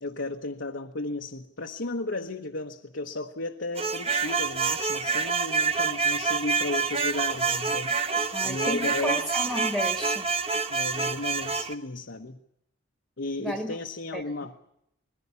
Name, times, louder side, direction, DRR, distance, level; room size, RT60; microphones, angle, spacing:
voice 1, 0.0-9.2 10.7-12.4 13.2-14.6, left 2 dB, 60° left, 3 dB, 1.1 m, -34 dB
sound 1, 3.8-11.7, right 5 dB, 30° right, 1.2 m, -27 dB
voice 2, 8.3-10.3 13.4-13.8 14.1-14.2, equal, ahead, 5 dB, 1.4 m, -32 dB
21.0 x 15.5 x 9.7 m, 0.78 s
head